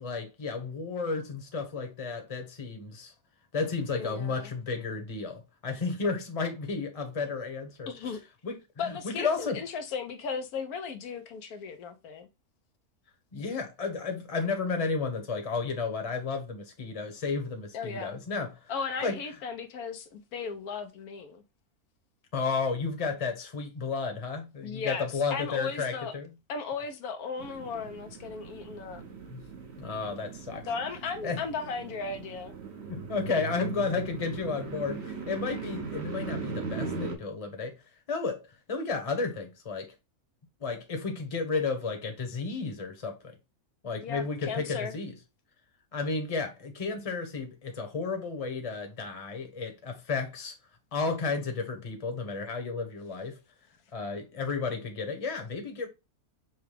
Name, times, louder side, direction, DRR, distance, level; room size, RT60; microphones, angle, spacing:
voice 1, 0.0-3.1 3.5-7.9 8.4-8.5 9.0-9.6 13.3-18.5 19.0-19.2 22.3-26.3 29.3-29.4 29.8-30.6 31.2-31.4 32.9-37.7 38.1-38.4 38.7-39.9 40.6-43.3 43.8-45.1 45.9-50.5 50.9-53.4 53.9-55.9, left 4 dB, 30° left, 0.9 m, -32 dB
voice 2, 3.9-4.5 7.9-8.2 8.8-12.3 17.7-18.2 18.7-21.4 24.6-25.1 25.3-26.1 26.5-29.0 30.6-32.5 44.0-44.9, left 5 dB, 85° left, 1.3 m, -36 dB
sound 1, 27.4-37.2, right 4 dB, 50° right, 1.1 m, -39 dB
5.9 x 2.2 x 3.3 m
omnidirectional pair, 1.5 m